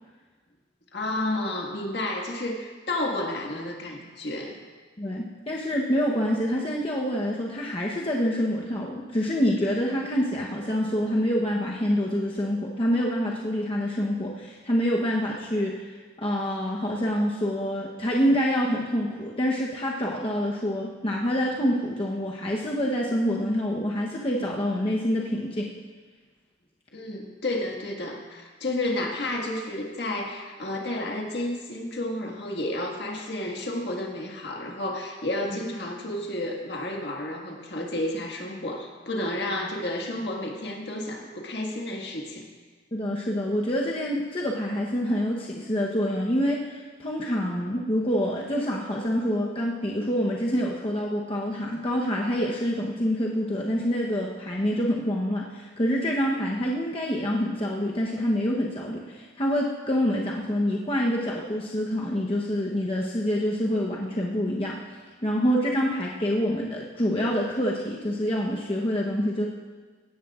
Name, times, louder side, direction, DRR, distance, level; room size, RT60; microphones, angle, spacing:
voice 1, 0.9-4.6 26.9-42.4, left 1 dB, 60° left, 0 dB, 1.8 m, -31 dB
voice 2, 5.0-15.9 16.2-25.7 42.9-64.8 65.2-69.5, equal, 30° left, -3 dB, 0.9 m, -26 dB
17.0 x 13.5 x 2.4 m, 1.4 s
head